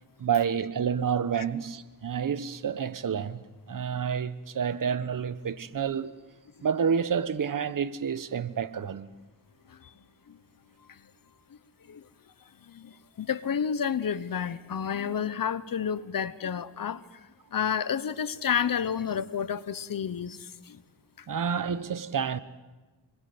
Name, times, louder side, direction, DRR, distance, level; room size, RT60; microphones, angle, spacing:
voice 1, 0.2-6.1 6.6-9.1 21.3-22.4, right 7 dB, 50° right, 1.1 m, -29 dB
voice 2, 12.7-17.0 17.5-20.8, left 7 dB, 55° left, 1.1 m, -30 dB
25.5 x 23.0 x 7.9 m
wide cardioid pair, 105°, 41 cm